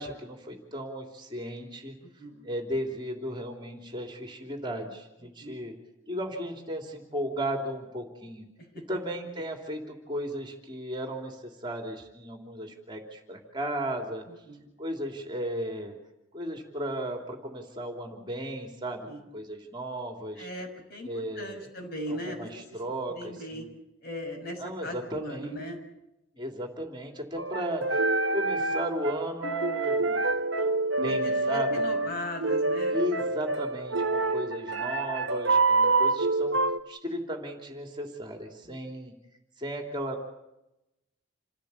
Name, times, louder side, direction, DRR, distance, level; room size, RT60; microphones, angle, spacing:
voice 1, 0.0-2.0 2.4-5.7 6.1-8.4 8.7-14.2 14.8-15.9 16.3-19.1 19.3-20.5 21.0-21.7 22.1-23.7 24.6-25.6 26.3-28.0 28.3-30.2 31.0-31.7 32.9-36.6 36.9-39.1 39.6-40.3, equal, 20° right, 3 dB, 3.1 m, -35 dB
voice 2, 2.0-2.5 5.4-5.6 8.7-9.0 14.5-14.6 19.1-19.2 20.4-22.6 23.1-23.7 24.0-25.8 31.0-33.0 38.6-38.8, left 1 dB, 50° left, 3 dB, 5.9 m, -38 dB
sound 1, 27.4-36.8, right 3 dB, 70° right, 1.2 m, -27 dB
28.0 x 16.5 x 8.4 m, 0.91 s
head